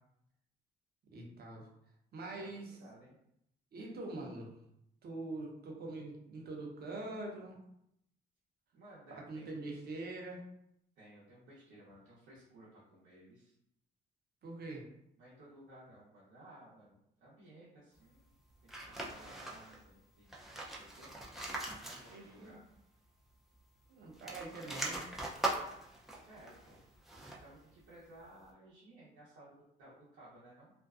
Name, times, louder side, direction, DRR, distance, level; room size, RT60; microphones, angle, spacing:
voice 1, 1.1-1.7 2.1-2.8 3.7-4.6 5.0-7.6 9.1-10.4 14.4-14.8 22.1-22.6 23.9-25.1, right 2 dB, 55° right, -1 dB, 0.8 m, -44 dB
voice 2, 2.3-3.2 8.7-9.5 11.0-13.5 15.2-18.3 18.6-21.1 21.8-22.6 26.3-26.8 27.4-30.7, right 1 dB, 85° right, -8 dB, 0.8 m, -57 dB
sound 1, 18.7-19.8 20.2-22.5 22.7-22.8 24.1-27.6, right 2 dB, ahead, 0.5 m, -41 dB
2.5 x 2.2 x 2.4 m, 0.77 s
cardioid pair, 90°, 20 cm